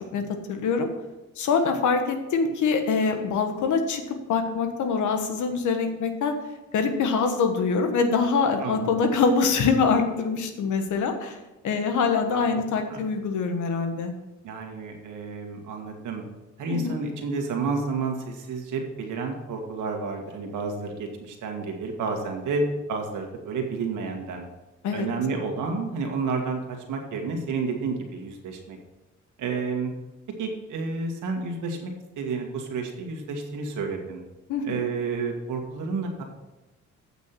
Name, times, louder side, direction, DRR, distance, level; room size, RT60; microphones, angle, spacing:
voice 1, 0.1-0.9 1.4-6.3 6.7-11.4 11.6-14.1 16.7-17.0 24.8-25.1 34.5-34.8, left 5 dB, 75° left, 6 dB, 1.4 m, -24 dB
voice 2, 8.6-8.9 12.3-12.6 12.9-13.1 14.4-16.2 16.6-24.5 24.9-28.8 29.4-29.9 30.4-34.2 34.6-36.2, right 4 dB, 80° right, 2 dB, 2.0 m, -30 dB
8.5 x 6.1 x 5.9 m, 1.1 s
cardioid pair, 90°, 30 cm